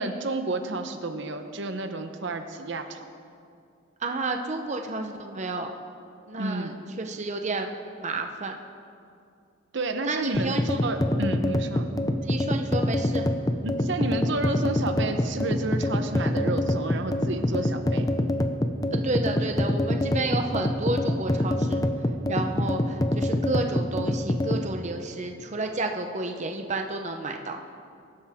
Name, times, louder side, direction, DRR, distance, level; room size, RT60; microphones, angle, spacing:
voice 1, 0.0-3.0 6.4-6.8 9.7-11.9 13.6-18.1, right 2 dB, 65° right, 7 dB, 0.9 m, -31 dB
voice 2, 4.0-5.7 6.3-8.6 10.0-10.7 12.2-13.2 18.9-21.8 22.3-27.6, right 2 dB, 35° right, 4 dB, 0.8 m, -31 dB
sound 1, 10.3-24.7, left 1 dB, 20° left, 0.7 m, -25 dB
23.0 x 12.5 x 3.6 m, 2.4 s
head